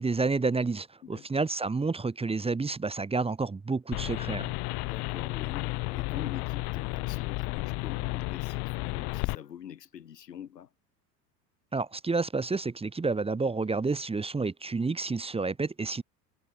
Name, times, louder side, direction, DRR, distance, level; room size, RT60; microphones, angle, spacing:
voice 1, 0.0-4.5 11.7-16.0, right 4 dB, 10° right, 1.5 m, -29 dB
voice 2, 1.0-1.5 4.8-10.7, left 9 dB, 80° left, 5.2 m, -44 dB
sound 1, 3.9-9.4, left 25 dB, 50° left, 4.7 m, -32 dB
figure-of-eight pair, 80°, 48 cm